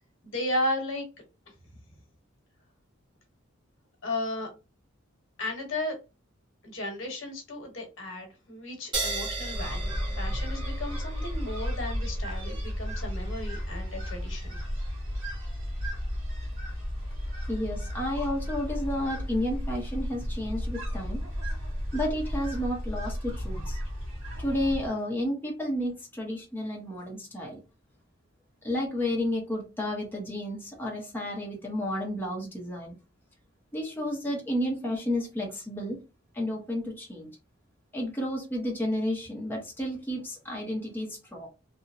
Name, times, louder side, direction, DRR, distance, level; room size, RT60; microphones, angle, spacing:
voice 1, 0.2-1.0 4.0-4.5 5.4-6.0 6.6-14.6, left 1 dB, 70° left, 1.1 m, -34 dB
sound 1, 8.9-15.9, right 2 dB, 25° right, 0.9 m, -37 dB
sound 2, 9.5-24.9, equal, 70° right, 1.5 m, -34 dB
voice 2, 17.5-21.2 21.9-23.8 24.4-27.6 28.6-33.0 33.7-36.0 36.3-37.3 37.9-41.5, left 1 dB, 10° left, 0.7 m, -31 dB
2.8 x 2.1 x 2.4 m
head